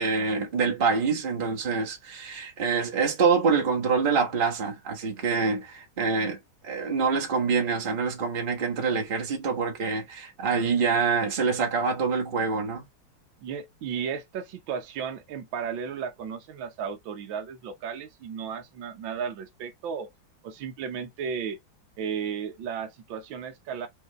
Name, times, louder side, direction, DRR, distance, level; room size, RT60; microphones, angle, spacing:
voice 1, 0.0-6.4 6.6-12.8, right 5 dB, 30° right, 1.1 m, -26 dB
voice 2, 13.4-20.1 20.4-21.6 22.0-23.9, right 7 dB, 65° right, 1.6 m, -34 dB
5.3 x 2.8 x 3.1 m
omnidirectional pair, 2.4 m